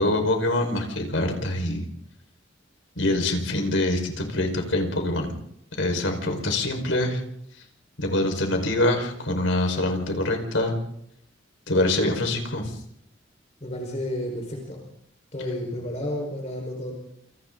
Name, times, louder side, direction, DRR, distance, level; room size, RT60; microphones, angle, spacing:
voice 1, 0.0-1.8 3.0-5.3 5.8-7.2 8.0-10.8 11.7-12.8, left 1 dB, 85° left, 3 dB, 5.1 m, -24 dB
voice 2, 13.6-14.8 15.3-16.9, left 1 dB, 35° left, 1 dB, 4.9 m, -31 dB
28.5 x 28.5 x 4.0 m, 0.75 s
head